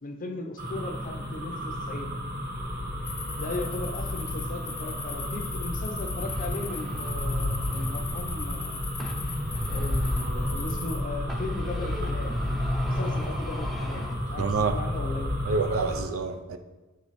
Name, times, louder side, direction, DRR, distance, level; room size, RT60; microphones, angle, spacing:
voice 1, 0.0-2.1 3.4-8.7 9.7-12.3 12.8-15.4, left 2 dB, 40° left, 4 dB, 0.6 m, -37 dB
sound 1, 0.6-16.0, left 1 dB, 40° right, 1.3 m, -32 dB
sound 2, 3.0-11.0, left 5 dB, 85° left, 1.2 m, -40 dB
sound 3, 6.2-8.7 9.0-11.0 11.3-14.7, equal, ahead, 0.5 m, -36 dB
voice 2, 14.4-14.8 15.4-16.6, right 4 dB, 70° right, 8 dB, 0.5 m, -27 dB
7.5 x 3.2 x 4.1 m, 1.1 s
head